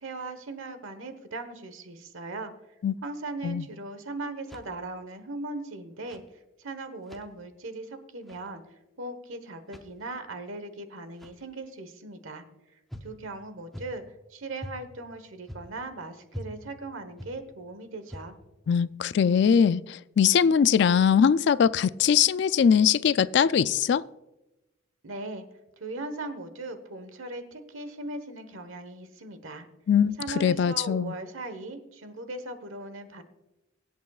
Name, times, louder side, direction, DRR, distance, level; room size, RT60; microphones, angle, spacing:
voice 1, 0.0-2.5 3.0-6.2 6.6-8.6 9.0-12.4 13.0-14.0 14.3-18.4 25.0-25.4 25.8-29.7 30.2-33.2, right 2 dB, 85° right, 10 dB, 1.3 m, -38 dB
sound 1, 4.4-5.0 5.9-6.3 6.9-7.3 8.2-8.5 9.6-10.0 11.1-11.5 12.9-13.2 13.7-14.1 14.6-14.9 15.5-15.9 16.3-16.6 17.2-17.4 18.0-18.4, equal, ahead, 0.8 m, -43 dB
voice 2, 18.7-24.0 29.9-31.1, left 7 dB, 60° left, 17 dB, 0.3 m, -22 dB
24.0 x 8.2 x 2.4 m, 1.0 s
head